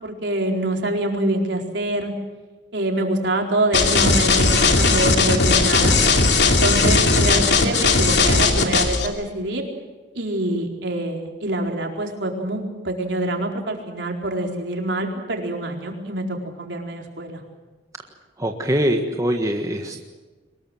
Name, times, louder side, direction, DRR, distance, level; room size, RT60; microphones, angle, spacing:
voice 1, 0.0-2.1 2.7-6.0 6.4-9.7 10.1-17.4, right 1 dB, 70° right, 1 dB, 4.4 m, -25 dB
sound 1, 3.7-9.1, left 3 dB, 65° left, 2.8 m, -17 dB
voice 2, 18.1-20.0, equal, 20° right, 3 dB, 1.6 m, -24 dB
23.5 x 21.0 x 7.9 m, 1.3 s
head